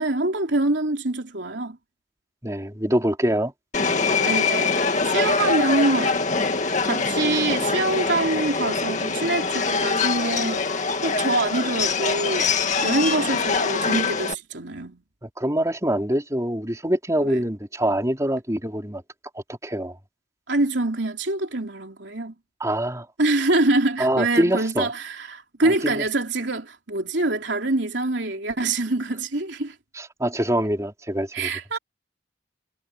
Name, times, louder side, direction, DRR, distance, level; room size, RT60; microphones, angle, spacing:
voice 1, 0.0-1.8 4.2-6.2 6.8-15.0 17.2-17.4 20.5-22.3 23.2-29.7 31.3-31.8, right 2 dB, 70° right, 3.3 m, -25 dB
voice 2, 2.4-3.5 15.2-19.0 19.6-19.9 22.6-23.1 24.0-24.9 25.6-26.0 30.0-31.5, right 1 dB, 15° right, 4.8 m, -24 dB
Subway metro underground, 3.7-14.3, left 4 dB, 40° left, 2.1 m, -24 dB
head